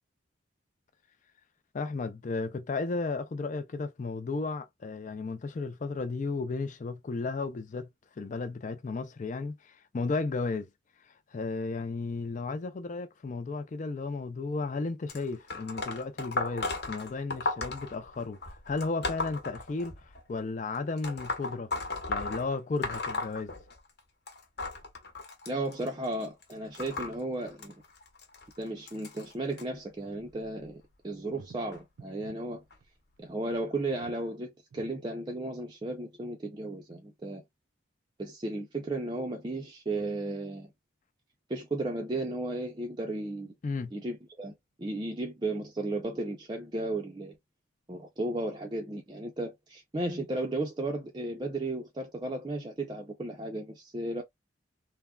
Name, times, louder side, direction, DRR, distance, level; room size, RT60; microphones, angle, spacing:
voice 1, 1.7-7.9 8.2-10.7 11.1-21.7 22.1-23.5 43.6-43.9, left 3 dB, 40° left, 0.3 m, -34 dB
sound 1, 15.1-20.2 21.0-24.0 24.3-29.6 30.4-30.7 31.7-31.8 32.7-32.8 33.5-33.6, left 3 dB, 55° left, 0.9 m, -36 dB
voice 2, 25.5-27.7 28.6-32.6 33.2-37.4 38.2-40.7 41.5-43.5 43.9-47.4 47.9-54.2, right 2 dB, 20° right, 0.4 m, -34 dB
sound 2, 31.3-32.4 32.7-32.8 33.2-33.3 33.7-34.3 34.7-34.9 35.5-35.6, right 5 dB, 80° right, 0.4 m, -51 dB
3.4 x 2.1 x 2.3 m
head